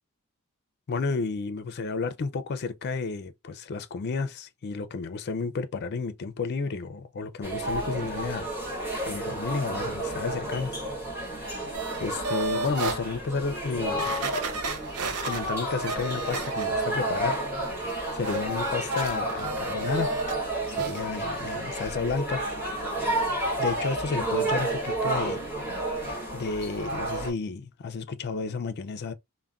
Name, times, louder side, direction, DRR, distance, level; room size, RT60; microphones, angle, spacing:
voice 1, 0.9-8.5 9.0-10.8 12.0-14.1 15.2-17.4 18.1-20.1 20.7-22.4 23.6-25.4 26.3-29.1, left 4 dB, 50° left, 0.4 m, -31 dB
sound 1, 7.4-27.3, right 1 dB, 10° right, 1.3 m, -31 dB
sound 2, 11.7-13.0 13.5-13.6 14.0-16.9 17.3-20.4 20.7-21.0 21.4-21.5, right 3 dB, 80° right, 0.6 m, -34 dB
3.5 x 2.1 x 2.3 m
head